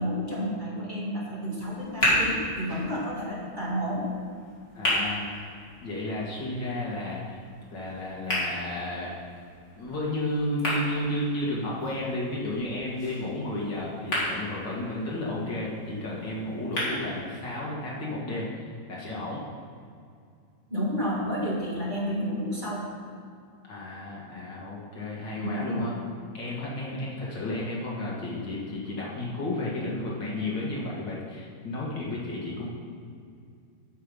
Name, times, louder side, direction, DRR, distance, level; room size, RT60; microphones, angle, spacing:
voice 1, 0.0-4.1 20.7-22.9 25.3-25.9, equal, 25° right, -5 dB, 1.9 m, -31 dB
sound 1, 1.6-17.6, left 1 dB, 35° left, 3.2 m, -34 dB
voice 2, 4.7-5.3 5.8-7.4 7.7-9.1 9.8-18.5 18.9-19.4 23.7-26.0 26.3-32.7, left 1 dB, 60° left, -5 dB, 2.4 m, -32 dB
8.5 x 7.9 x 5.4 m, 2.3 s
omnidirectional pair, 2.3 m